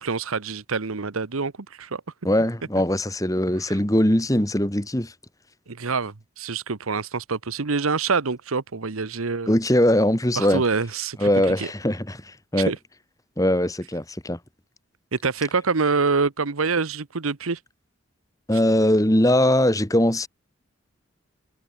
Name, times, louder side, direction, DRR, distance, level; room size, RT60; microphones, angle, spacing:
voice 1, 0.0-2.0 3.7-3.8 5.7-9.5 10.4-11.7 12.5-12.8 15.1-17.6, right 4 dB, 85° right, 1.0 m, -26 dB
voice 2, 2.2-5.1 9.5-10.6 11.2-12.7 13.4-14.4 18.5-20.3, left 1 dB, 15° left, 2.2 m, -21 dB
head